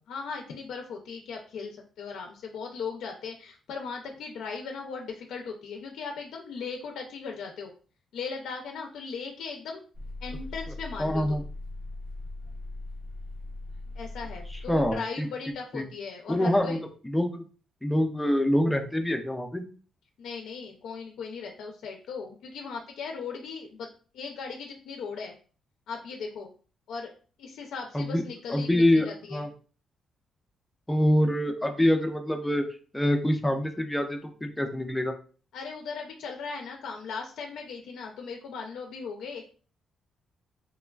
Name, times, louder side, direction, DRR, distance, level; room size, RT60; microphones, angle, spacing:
voice 1, 0.1-7.7 8.1-9.8 10.2-11.4 14.0-16.8 20.2-23.9 24.1-25.3 25.9-26.5 26.9-27.1 27.4-29.5 35.5-39.5, left 5 dB, 80° left, 2 dB, 0.4 m, -38 dB
sound 1, 9.9-15.0, left 2 dB, 60° right, 0.7 m, -39 dB
voice 2, 11.0-11.4 14.5-15.3 15.7-15.8 16.3-17.4 17.8-19.6 27.9-28.2 28.5-29.5 30.9-32.6 32.9-35.1, left 1 dB, 5° left, 5 dB, 0.3 m, -25 dB
3.1 x 2.2 x 2.2 m, 0.39 s
cardioid pair, 155°, 0 cm